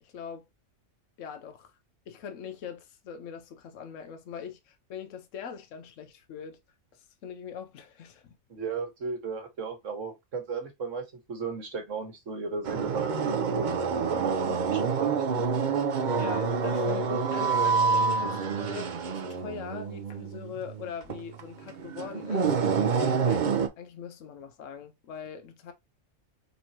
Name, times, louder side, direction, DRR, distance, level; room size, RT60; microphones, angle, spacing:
voice 1, 0.0-0.4 1.2-1.7 2.1-6.6 6.9-8.4 16.2-25.7, left 7 dB, 75° left, 1.1 m, -42 dB
voice 2, 8.5-15.6, right 4 dB, 75° right, 1.7 m, -36 dB
sound 1, 12.6-23.7, right 5 dB, 45° right, 0.7 m, -27 dB
4.5 x 4.0 x 2.8 m
omnidirectional pair, 1.3 m